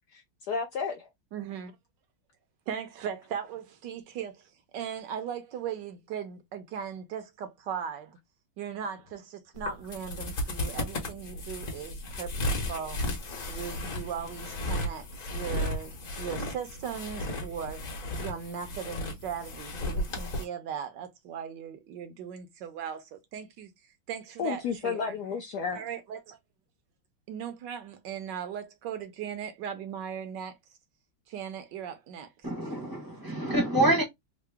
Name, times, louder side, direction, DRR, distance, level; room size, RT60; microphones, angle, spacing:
voice 1, 0.1-1.1 24.4-25.8, left 6 dB, 75° left, 0.9 m, -32 dB
voice 2, 1.3-1.7 2.7-8.2 8.6-13.0 13.5-15.9 16.2-17.9 18.2-23.7 24.1-25.1 25.7-26.4 27.3-30.6 31.3-32.3, right 8 dB, 70° right, 1.2 m, -38 dB
sound 1, 9.5-20.4, left 1 dB, 50° left, 1.2 m, -34 dB
voice 3, 32.4-34.0, right 1 dB, 20° right, 0.6 m, -26 dB
3.7 x 2.1 x 3.3 m
omnidirectional pair, 2.2 m